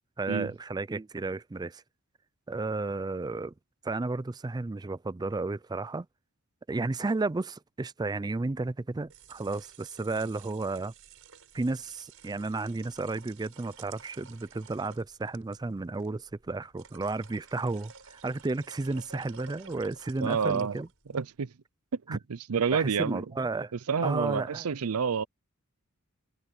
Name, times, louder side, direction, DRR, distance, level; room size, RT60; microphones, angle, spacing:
voice 1, 0.2-1.8 2.5-3.5 3.8-6.1 6.7-10.9 11.5-20.9 22.1-22.2 22.7-23.7 24.0-24.7, right 3 dB, 20° right, 0.4 m, -33 dB
sound 1, 8.9-21.2, right 6 dB, 70° right, 7.5 m, -53 dB
voice 2, 20.2-20.8 21.1-21.5 21.9-23.2 23.9-25.2, right 6 dB, 85° right, 0.6 m, -29 dB
head